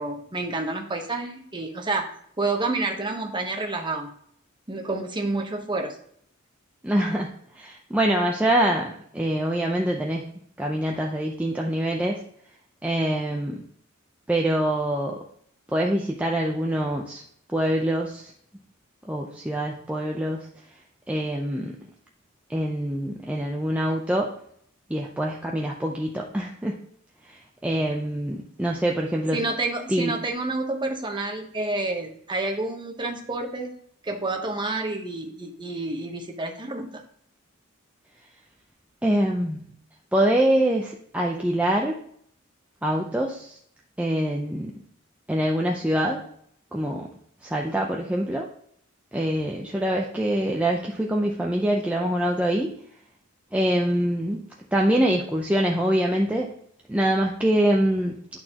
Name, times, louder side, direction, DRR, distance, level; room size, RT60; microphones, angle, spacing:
voice 1, 0.0-2.1 2.4-4.2 4.7-6.0 29.3-33.7 34.0-37.0, right 2 dB, 20° right, 3 dB, 1.0 m, -29 dB
voice 2, 6.8-7.3 7.6-10.3 10.6-12.2 12.8-13.6 14.3-15.2 15.7-17.2 17.5-18.3 19.1-20.5 21.1-21.8 22.5-24.3 24.9-26.8 27.6-29.4 29.9-30.1 39.0-39.7 40.1-42.0 42.8-43.6 44.0-44.7 45.3-46.2 46.7-47.1 47.4-48.5 49.1-52.7 53.5-54.4 54.7-56.5 56.9-58.2, right 1 dB, 5° right, -1 dB, 0.5 m, -24 dB
11.0 x 4.2 x 2.9 m, 0.65 s
head